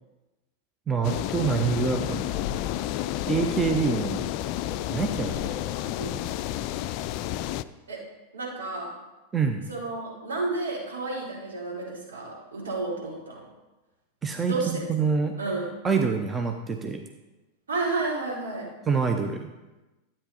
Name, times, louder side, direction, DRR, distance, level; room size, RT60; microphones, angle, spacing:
voice 1, 0.9-2.3 3.3-4.2 4.9-5.5 9.3-9.7 14.2-15.3 15.8-17.0 18.9-19.5, right 5 dB, 15° right, 5 dB, 0.8 m, -26 dB
sound 1, 1.0-7.6, left 13 dB, 45° left, 0.4 m, -30 dB
voice 2, 5.8-6.2 7.9-8.0 8.3-9.0 9.7-13.4 14.4-14.9 15.4-15.7 17.7-18.7, right 3 dB, 70° right, -4 dB, 3.9 m, -31 dB
12.5 x 8.8 x 4.2 m, 1.1 s
figure-of-eight pair, 90°, 0 cm